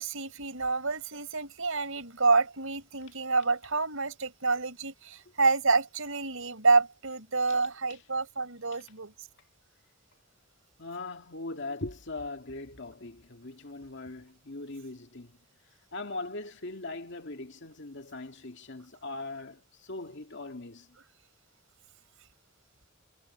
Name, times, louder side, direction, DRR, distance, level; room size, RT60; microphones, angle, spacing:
voice 1, 0.0-9.1, right 3 dB, 85° right, 4.5 m, -28 dB
voice 2, 10.8-15.4 15.9-20.9, left 2 dB, 60° left, 2.3 m, -40 dB
head